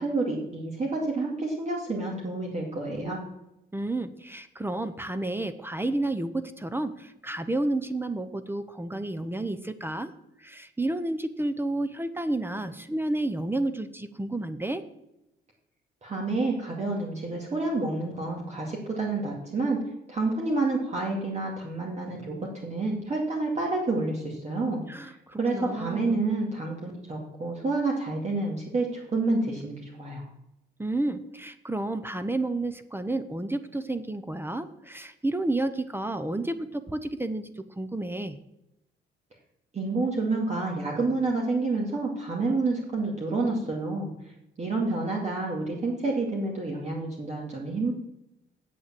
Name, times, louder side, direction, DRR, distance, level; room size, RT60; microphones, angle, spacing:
voice 1, 0.0-3.2 16.0-19.8 20.1-24.8 25.4-30.2 39.7-44.1 44.6-47.9, right 3 dB, 35° right, -1 dB, 2.2 m, -29 dB
voice 2, 3.7-10.1 10.4-14.8 24.9-26.2 30.8-38.4, right 2 dB, 10° right, 12 dB, 0.7 m, -31 dB
8.3 x 7.2 x 7.5 m, 0.88 s
cardioid pair, 90°, 20 cm